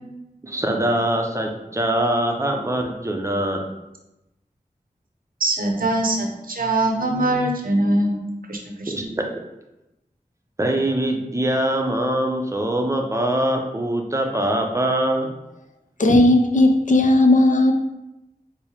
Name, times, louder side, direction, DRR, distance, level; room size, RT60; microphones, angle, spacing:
voice 1, 0.4-3.7 8.9-9.3 10.6-15.4, right 1 dB, 20° right, 3 dB, 0.5 m, -23 dB
voice 2, 5.4-8.2 8.5-9.1, right 1 dB, 70° right, 2 dB, 0.6 m, -22 dB
voice 3, 16.0-17.7, left 1 dB, 55° left, 5 dB, 0.5 m, -15 dB
4.5 x 2.0 x 2.9 m, 0.93 s
wide cardioid pair, 40°, 15 cm